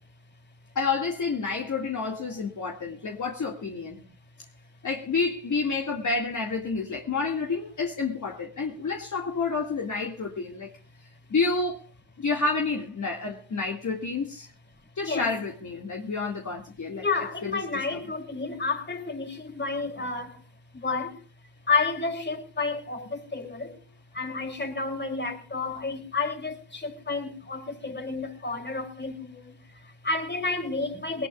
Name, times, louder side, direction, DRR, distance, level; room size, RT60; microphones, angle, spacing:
voice 1, 0.8-4.0 4.8-10.7 11.3-11.8 12.2-14.5 15.0-17.0 17.4-17.6 17.9-18.0, left 4 dB, 40° left, 2.3 m, -29 dB
voice 2, 15.0-15.3 16.9-20.4 20.7-21.2 21.7-23.8 24.1-31.3, left 4 dB, 25° left, 3.2 m, -31 dB
20.5 x 19.0 x 2.5 m
cardioid pair, 80°, 45 cm